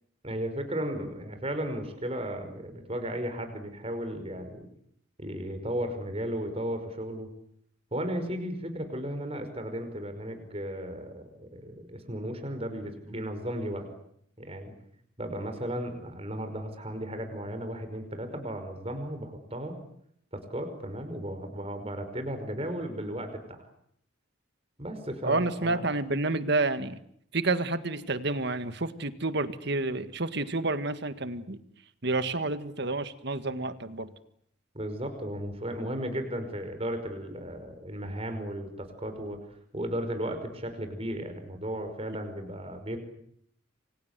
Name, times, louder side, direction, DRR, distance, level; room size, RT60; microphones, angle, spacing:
voice 1, 0.2-4.7 5.2-7.3 7.9-13.9 14.4-14.7 15.2-19.8 20.3-23.6 24.8-25.9 34.7-39.4 39.7-43.0, equal, 30° right, 7 dB, 5.4 m, -35 dB
voice 2, 25.2-27.0 27.3-31.6 32.0-34.1, right 2 dB, 55° right, 11 dB, 1.8 m, -29 dB
29.0 x 25.0 x 8.2 m, 0.70 s
head